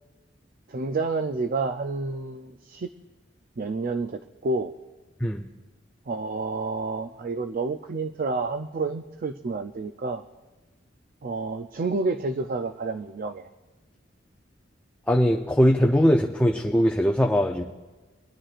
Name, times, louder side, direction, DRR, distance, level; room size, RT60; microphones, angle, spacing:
voice 1, 0.7-2.9 3.6-4.7 6.1-10.2 11.2-13.5, right 3 dB, 50° right, 8 dB, 0.5 m, -29 dB
voice 2, 15.1-17.6, equal, 5° left, 1 dB, 0.5 m, -21 dB
27.0 x 10.0 x 2.5 m, 1.3 s
head